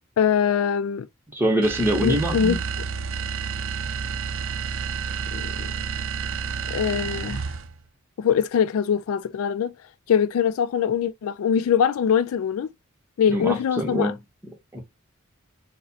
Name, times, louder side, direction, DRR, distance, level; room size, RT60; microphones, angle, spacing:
voice 1, 0.2-1.1 2.0-2.6 5.3-5.7 6.7-7.4 8.2-9.7 10.1-12.7 13.2-14.1, left 7 dB, 85° left, 0.3 m, -23 dB
voice 2, 1.3-2.6 13.3-14.2 14.7-14.8, equal, 10° right, 0.9 m, -24 dB
sound 1, 1.6-7.8, right 6 dB, 65° right, 0.5 m, -30 dB
4.7 x 2.1 x 2.6 m
head